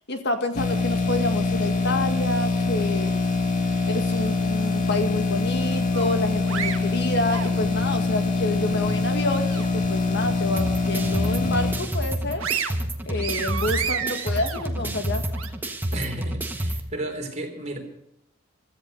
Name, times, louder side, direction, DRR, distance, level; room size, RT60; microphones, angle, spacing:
voice 1, 0.1-3.2 3.9-12.4 13.1-15.2, left 2 dB, 55° left, 6 dB, 1.8 m, -28 dB
sound 1, 0.5-11.7, left 3 dB, 40° left, 1.8 m, -24 dB
sound 2, 5.9-8.0 8.4-9.9 10.2-10.4 10.9-11.6 12.0-15.5, right 6 dB, 80° right, 1.5 m, -33 dB
sound 3, 10.6-16.8, right 1 dB, 10° right, 1.3 m, -29 dB
voice 2, 15.9-17.8, right 1 dB, 35° right, 3 dB, 3.5 m, -33 dB
16.0 x 14.0 x 5.4 m, 0.78 s
head